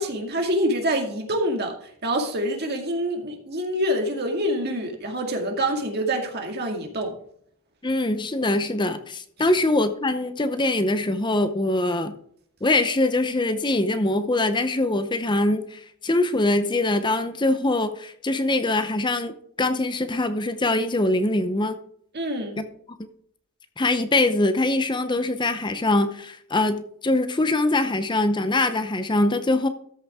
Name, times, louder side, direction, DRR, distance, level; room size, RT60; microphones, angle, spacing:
voice 1, 0.0-7.2 22.1-22.6, equal, 45° right, 2.1 m, -26 dB
voice 2, 7.8-12.2 12.6-21.8 22.6-22.7 23.8-29.7, left 2 dB, 20° left, 0.7 m, -23 dB
13.5 x 6.4 x 3.6 m
head